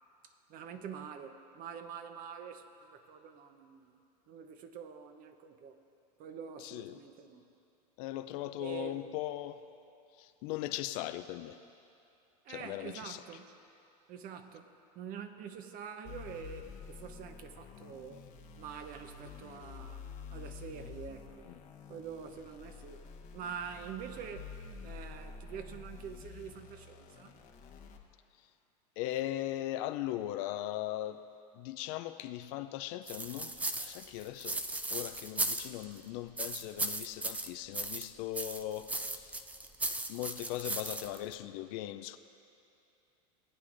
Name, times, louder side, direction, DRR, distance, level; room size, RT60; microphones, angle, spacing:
voice 1, 0.2-4.0 4.3-5.8 6.2-7.4 8.6-9.2 12.4-13.5 14.1-14.7 14.9-18.2 18.6-20.0 20.3-21.5 21.9-23.1 23.3-24.5 24.8-27.4, right 7 dB, 45° right, 7 dB, 0.9 m, -46 dB
voice 2, 6.6-7.0 8.0-9.6 10.2-11.6 12.5-13.2 21.5-21.6 29.0-31.2 31.5-34.6 34.9-39.4 40.1-42.2, left 14 dB, 55° left, 10 dB, 0.5 m, -39 dB
sound 1, 16.0-28.0, left 5 dB, 40° left, 1.0 m, -49 dB
sound 2, 33.1-36.0 36.4-38.1 38.3-41.3, right 2 dB, 5° right, 0.4 m, -36 dB
19.0 x 9.1 x 2.6 m, 2.7 s
hypercardioid pair, 100°, 21 cm